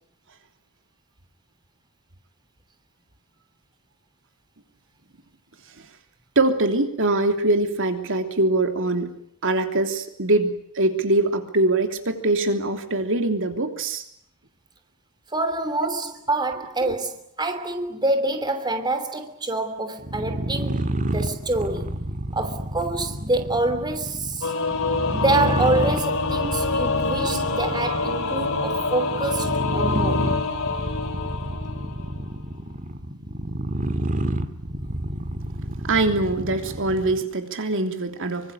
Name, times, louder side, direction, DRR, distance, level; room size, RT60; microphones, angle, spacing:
voice 1, 6.3-9.1 9.4-14.0 16.8-16.9 35.8-38.5, right 2 dB, 60° right, 3.2 m, -23 dB
voice 2, 15.3-22.0 22.3-24.5 25.1-30.3, right 2 dB, 20° right, 3.0 m, -26 dB
sound 1, 20.0-37.3, right 1 dB, 35° right, 2.2 m, -29 dB
Singing / Musical instrument, 24.4-32.2, left 4 dB, 65° left, 3.6 m, -26 dB
26.0 x 25.5 x 8.2 m
head